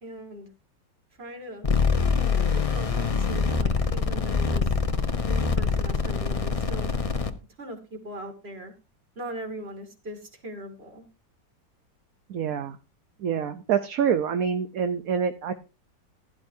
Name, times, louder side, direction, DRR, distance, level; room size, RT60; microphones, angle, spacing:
voice 1, 0.0-0.5 1.2-1.7 2.5-4.7 5.2-6.9 7.6-8.7 9.2-11.0, right 1 dB, 35° right, 5 dB, 2.3 m, -40 dB
sound 1, 1.6-7.3, left 5 dB, 35° left, 0.5 m, -24 dB
voice 2, 12.3-12.8 13.2-15.5, right 7 dB, 60° right, 8 dB, 1.0 m, -26 dB
16.0 x 11.0 x 2.7 m, 0.29 s
omnidirectional pair, 2.0 m